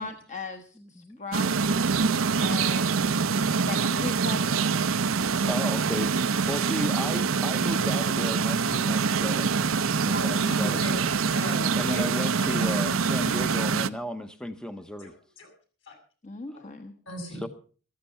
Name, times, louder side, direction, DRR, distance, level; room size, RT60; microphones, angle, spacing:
voice 1, 0.0-1.5 2.4-3.0 3.6-4.9 10.5-10.8 16.2-16.9, left 4 dB, 35° left, 5 dB, 1.2 m, -38 dB
sound 1, 1.3-13.9, right 5 dB, 85° right, 0.6 m, -25 dB
voice 2, 5.5-9.5 10.0-11.1 11.7-15.1 17.4-17.5, equal, 5° left, 8 dB, 0.7 m, -34 dB
voice 3, 9.9-13.0 15.0-15.5 15.9-16.0 16.5-16.6 17.1-17.5, right 1 dB, 65° left, 4 dB, 7.1 m, -37 dB
14.0 x 14.0 x 5.6 m, 0.40 s
head